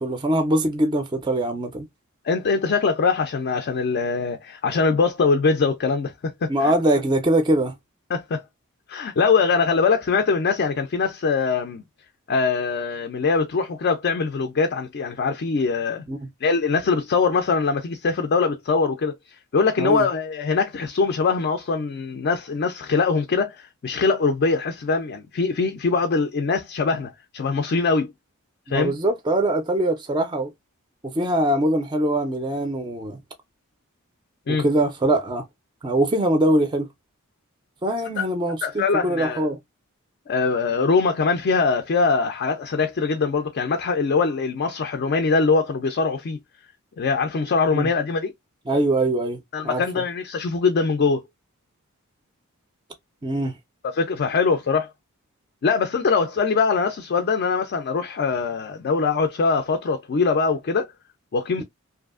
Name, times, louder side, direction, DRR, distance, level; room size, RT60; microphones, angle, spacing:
voice 1, 0.0-1.9 6.5-7.7 16.1-16.2 19.8-20.1 28.7-30.5 31.0-33.2 34.5-35.5 35.8-36.9 37.8-39.6 47.7-47.9 48.7-49.8 53.2-53.6 61.6-61.7, right 1 dB, 20° right, 0.4 m, -22 dB
voice 2, 2.3-6.7 8.1-8.4 8.9-11.8 12.3-16.0 16.4-19.1 19.5-28.1 28.7-28.9 34.5-34.7 38.2-38.3 38.6-39.4 40.3-46.4 47.0-48.3 49.5-51.2 53.8-54.9 55.6-60.9 61.3-61.6, left 4 dB, 45° left, 0.4 m, -22 dB
2.6 x 2.4 x 2.3 m
head